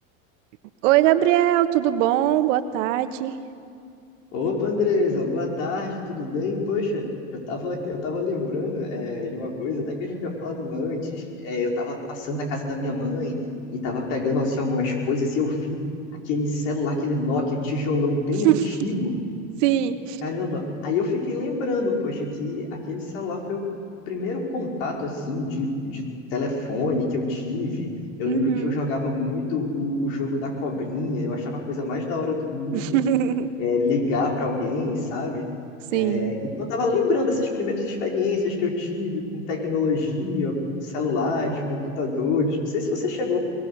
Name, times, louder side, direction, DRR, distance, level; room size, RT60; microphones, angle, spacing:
voice 1, 0.8-3.3 18.4-18.6 19.6-20.2 28.3-28.8 32.7-33.5 35.9-36.3, right 12 dB, 70° right, 10 dB, 1.5 m, -21 dB
voice 2, 4.3-13.3 13.7-15.8 16.2-19.1 20.2-23.7 24.1-26.0 26.3-27.9 28.2-33.0 33.6-35.4 35.9-43.4, left 3 dB, 70° left, 0 dB, 5.1 m, -26 dB
22.5 x 22.5 x 6.8 m, 2.3 s
hypercardioid pair, 85°, 40 cm